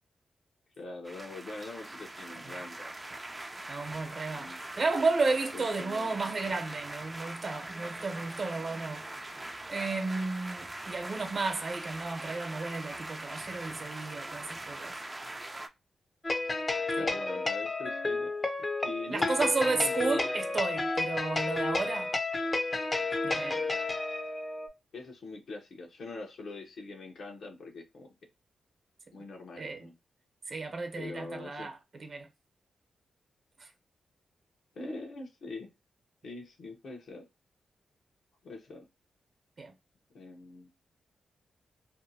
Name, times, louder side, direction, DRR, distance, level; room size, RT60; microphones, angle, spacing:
voice 1, 0.8-3.0 4.3-4.6 5.5-6.2 17.0-18.3 18.6-20.2 24.9-28.1 29.1-29.9 31.0-31.7 34.7-35.7 36.2-37.3 38.4-38.9 40.1-40.7, left 3 dB, 70° left, 0.8 m, -43 dB
sound 1, 1.0-15.7, right 2 dB, 25° right, 0.4 m, -42 dB
voice 2, 3.7-9.1 9.7-14.9 17.0-17.1 19.1-22.1 23.2-23.6 29.6-29.8 30.5-31.7 32.0-32.3 39.6-39.7, right 3 dB, 55° right, 0.8 m, -33 dB
sound 2, 16.2-24.7, left 3 dB, 35° left, 0.5 m, -31 dB
2.6 x 2.2 x 2.7 m
cardioid pair, 55°, 0 cm